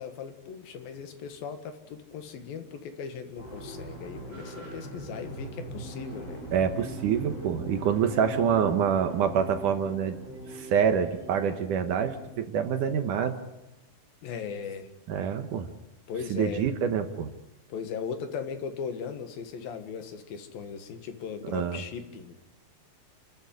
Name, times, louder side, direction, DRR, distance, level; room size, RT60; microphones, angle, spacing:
voice 1, 0.0-6.4 14.2-14.9 16.1-16.7 17.7-22.4, left 6 dB, 70° left, 7 dB, 3.3 m, -38 dB
sound 1, 3.4-12.3, right 1 dB, 25° left, 7.5 m, -41 dB
voice 2, 6.5-10.2 10.5-13.4 15.1-15.7 16.3-17.3 21.5-21.8, right 7 dB, 65° right, 7 dB, 2.3 m, -26 dB
28.5 x 13.5 x 9.3 m, 1.0 s
omnidirectional pair, 4.5 m